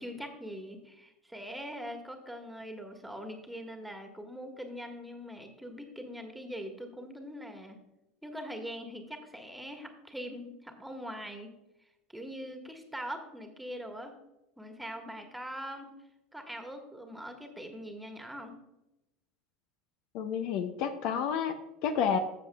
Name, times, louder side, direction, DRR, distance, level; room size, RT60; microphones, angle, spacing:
voice 1, 0.0-7.8 8.2-11.5 12.1-14.2 14.6-15.9 16.3-18.5, equal, 5° right, 4 dB, 1.6 m, -42 dB
voice 2, 20.1-22.2, left 7 dB, 55° left, 9 dB, 0.7 m, -30 dB
14.0 x 7.2 x 2.3 m, 0.94 s
figure-of-eight pair, 75°, 0 cm